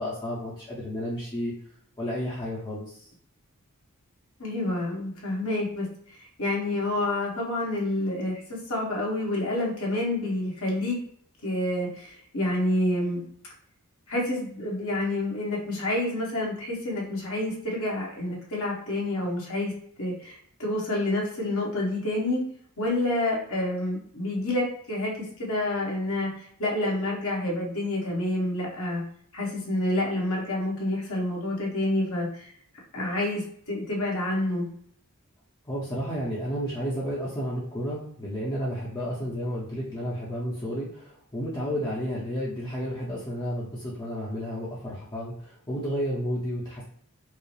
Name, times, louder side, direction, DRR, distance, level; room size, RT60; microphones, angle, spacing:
voice 1, 0.0-1.5 2.0-3.1 35.7-46.8, equal, 20° left, -7 dB, 0.7 m, -32 dB
voice 2, 4.4-11.0 11.4-13.2 14.1-19.7 20.0-22.4 22.8-29.0 29.3-32.5 32.9-34.7, left 1 dB, 75° left, -3 dB, 1.4 m, -28 dB
4.6 x 2.1 x 3.2 m, 0.63 s
head